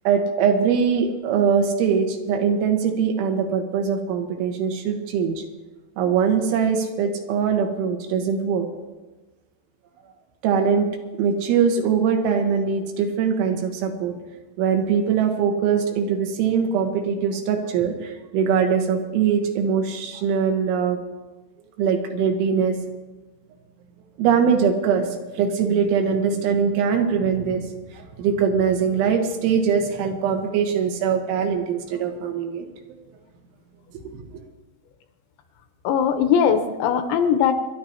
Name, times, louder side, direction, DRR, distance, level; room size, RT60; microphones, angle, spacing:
voice 1, 0.1-5.4 6.0-8.7 10.4-10.9 11.2-14.2 14.6-21.0 21.8-22.8 24.2-27.6 27.9-32.7 34.1-34.3, right 6 dB, 80° right, 4 dB, 3.7 m, -22 dB
voice 2, 35.8-37.5, left 7 dB, 80° left, 6 dB, 3.1 m, -20 dB
27.0 x 11.5 x 2.9 m, 1.2 s
omnidirectional pair, 5.5 m